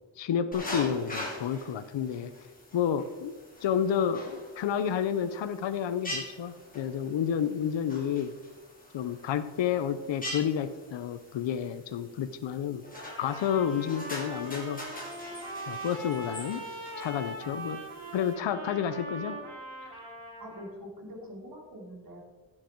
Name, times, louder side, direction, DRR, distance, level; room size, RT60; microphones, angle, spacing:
voice 1, 0.2-2.3 2.7-3.3 3.6-8.4 8.9-12.8 13.2-14.9 15.7-16.6 17.0-17.8 18.1-19.4, left 8 dB, 65° left, 10 dB, 0.7 m, -30 dB
sound 1, 0.5-18.3, left 1 dB, 15° left, 2.7 m, -43 dB
Trumpet, 12.9-20.7, right 1 dB, 85° right, 3.9 m, -41 dB
voice 2, 20.4-22.2, equal, 45° right, 0 dB, 3.3 m, -44 dB
15.5 x 7.7 x 4.5 m, 1.2 s
wide cardioid pair, 165°, 48 cm